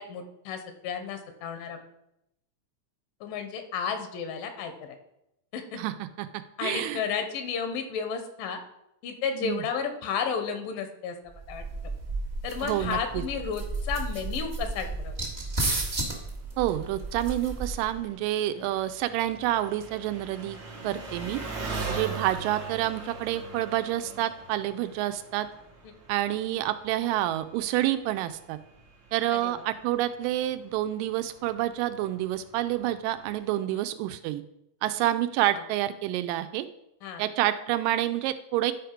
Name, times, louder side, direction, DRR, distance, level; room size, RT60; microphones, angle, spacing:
voice 1, 0.0-1.8 3.2-5.0 5.5-5.8 6.6-8.6 9.0-11.2 11.5-11.6 12.4-15.1 18.6-18.7 25.8-25.9 29.3-29.5 33.7-33.8 35.5-35.6 37.0-37.2, left 6 dB, 90° left, 7 dB, 2.6 m, -32 dB
voice 2, 5.8-6.3 6.6-7.0 9.4-9.6 12.6-13.2 16.6-20.6 20.8-21.4 21.9-25.5 26.1-28.6 29.1-34.4 34.8-36.7 37.2-38.7, right 13 dB, 85° right, 11 dB, 2.2 m, -28 dB
sound 1, 11.3-18.0, right 2 dB, 40° right, 0.6 m, -33 dB
Engine, 15.3-33.5, right 4 dB, 55° right, 1.3 m, -42 dB
10.5 x 5.0 x 4.5 m, 0.83 s
omnidirectional pair, 3.9 m